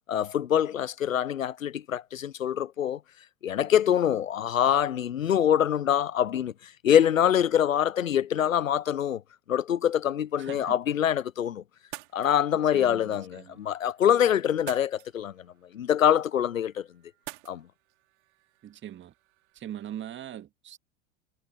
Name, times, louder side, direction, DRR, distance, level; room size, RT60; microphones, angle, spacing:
voice 1, 0.1-3.0 3.4-9.2 9.5-11.6 12.1-15.5 15.7-16.9 17.5-17.6, left 9 dB, 90° left, 0.6 m, -25 dB
voice 2, 10.4-10.8 12.7-13.6 18.6-19.1 19.5-20.8, right 11 dB, 30° right, 2.1 m, -41 dB
sound 1, 11.8-20.2, right 20 dB, 60° right, 3.2 m, -50 dB
figure-of-eight pair, 90°, 39 cm